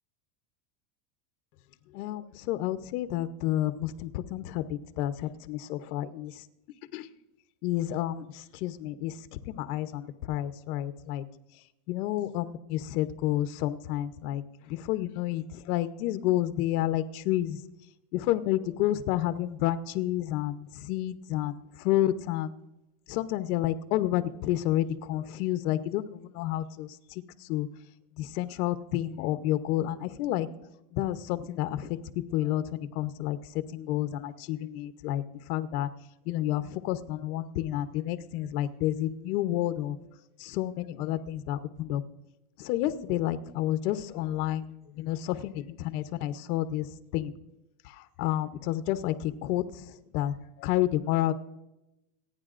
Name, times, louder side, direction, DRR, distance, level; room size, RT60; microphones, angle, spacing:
voice 1, 1.9-6.5 6.9-7.1 7.6-9.2 9.4-11.2 11.9-17.6 18.1-22.5 23.1-27.7 28.2-30.5 30.9-32.0 32.3-33.4 33.7-35.9 36.3-40.0 40.4-42.0 42.6-44.7 44.9-47.3 47.8-51.3, left 13 dB, 70° left, 12 dB, 1.0 m, -30 dB
27.0 x 10.0 x 2.5 m, 0.93 s
supercardioid pair, 160°, 46 cm